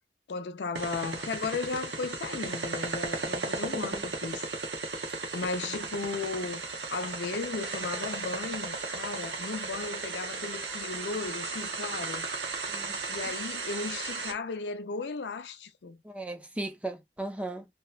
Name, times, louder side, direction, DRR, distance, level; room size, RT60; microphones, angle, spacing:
voice 1, 0.3-4.5 5.3-6.6 6.9-12.3 13.1-16.0, left 4 dB, 70° left, 0.5 m, -35 dB
sound 1, 0.8-14.3, right 3 dB, 75° right, 0.8 m, -35 dB
voice 2, 3.7-4.1 12.7-13.0 16.0-17.7, right 2 dB, 10° right, 0.4 m, -37 dB
2.9 x 2.2 x 2.2 m
head